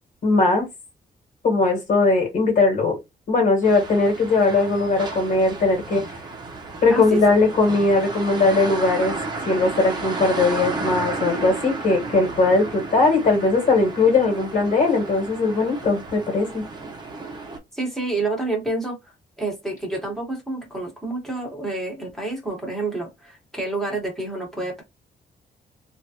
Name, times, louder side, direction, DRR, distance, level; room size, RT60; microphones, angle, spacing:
voice 1, 0.2-0.7 1.4-3.0 3.3-6.0 6.8-9.1 9.4-16.6, left 3 dB, 55° left, 1.5 m, -19 dB
sound 1, 3.6-17.6, right 3 dB, 30° right, 0.7 m, -33 dB
voice 2, 6.9-7.2 17.7-24.8, right 2 dB, ahead, 1.1 m, -29 dB
3.1 x 2.5 x 2.8 m
wide cardioid pair, 165°, 16 cm